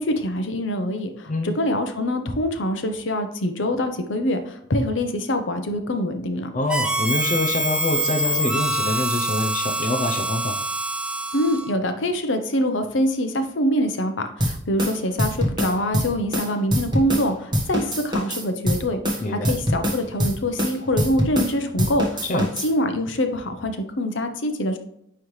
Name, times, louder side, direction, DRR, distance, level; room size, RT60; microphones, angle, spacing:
voice 1, 0.0-6.5 11.3-24.8, left 1 dB, 75° left, 7 dB, 0.8 m, -25 dB
voice 2, 6.5-10.6 19.2-19.5 22.3-22.5, left 2 dB, 40° left, 4 dB, 0.6 m, -25 dB
Harmonica, 6.7-11.7, right 1 dB, 5° right, 0.5 m, -25 dB
sound 1, 14.4-17.3 17.5-21.5 21.8-22.7, equal, 25° right, 1.3 m, -24 dB
9.3 x 3.2 x 3.1 m, 0.74 s
head